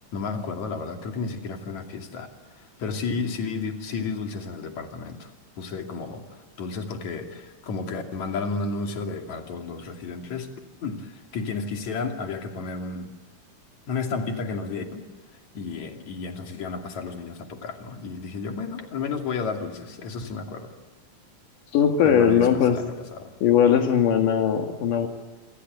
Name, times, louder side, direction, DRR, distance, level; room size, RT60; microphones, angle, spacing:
voice 1, 0.0-5.3 5.6-10.5 10.8-13.1 13.9-15.0 15.5-20.7 22.0-23.3, left 4 dB, 65° left, 3 dB, 3.9 m, -32 dB
voice 2, 21.7-22.8 23.4-25.1, left 8 dB, 85° left, 4 dB, 3.4 m, -19 dB
27.5 x 25.5 x 8.1 m, 1.2 s
omnidirectional pair, 3.6 m